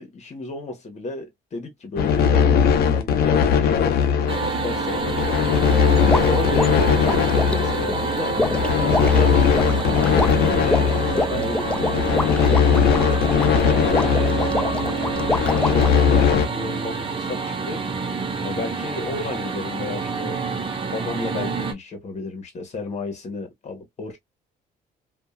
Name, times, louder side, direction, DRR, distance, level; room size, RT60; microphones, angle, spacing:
voice 1, 0.0-4.0 4.4-5.0 5.8-8.4 8.8-15.1 15.5-17.8 18.4-20.4 20.9-24.2, left 3 dB, 40° left, 1.4 m, -32 dB
sound 1, 2.0-16.5, left 7 dB, 70° left, 0.7 m, -20 dB
sound 2, 4.3-21.7, right 5 dB, 30° right, 0.9 m, -28 dB
sound 3, 6.1-16.0, left 1 dB, 5° left, 0.4 m, -27 dB
2.7 x 2.6 x 2.4 m
cardioid pair, 110°, 17 cm